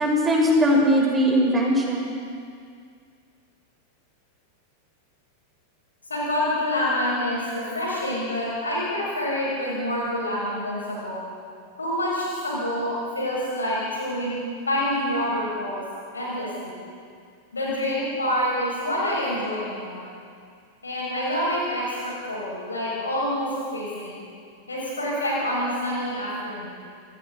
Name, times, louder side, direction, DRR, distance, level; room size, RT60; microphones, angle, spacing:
voice 1, 0.0-2.1, equal, 15° right, -1 dB, 5.8 m, -20 dB
voice 2, 6.1-11.2 11.8-14.4 14.7-15.8 16.1-16.7 17.5-20.1 20.8-24.2 24.7-26.7, left 1 dB, 75° left, -5 dB, 6.5 m, -27 dB
29.0 x 21.5 x 4.1 m, 2.3 s
figure-of-eight pair, 90°, 0 cm